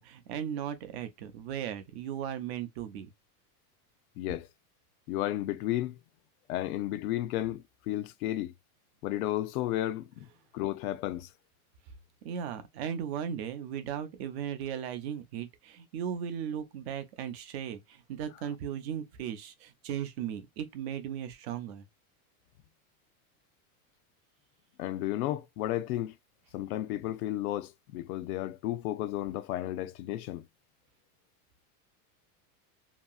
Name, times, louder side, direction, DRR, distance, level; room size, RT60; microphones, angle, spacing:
voice 1, 0.0-3.1 12.2-21.8, right 9 dB, 45° right, 0.5 m, -37 dB
voice 2, 4.2-4.5 5.1-6.0 6.5-8.5 9.0-10.3 10.5-11.3 24.8-26.1 26.5-30.4, left 14 dB, 75° left, 0.5 m, -33 dB
2.9 x 2.7 x 2.2 m
supercardioid pair, 180°, 44 cm